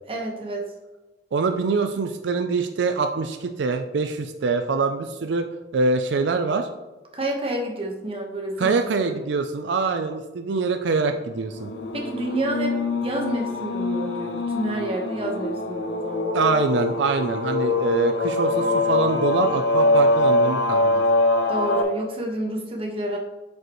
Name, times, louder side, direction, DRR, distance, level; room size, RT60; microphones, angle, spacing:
voice 1, 0.1-0.6 7.1-8.7 9.1-9.2 11.9-12.8 13.0-16.3 21.5-23.2, right 1 dB, 30° right, 0 dB, 1.2 m, -29 dB
voice 2, 1.3-5.5 5.7-6.7 8.6-11.7 16.3-21.0, right 4 dB, 80° right, 7 dB, 0.4 m, -24 dB
sound 1, 11.5-21.8, left 2 dB, 70° left, 0.7 m, -23 dB
7.7 x 5.3 x 3.1 m, 1.1 s
head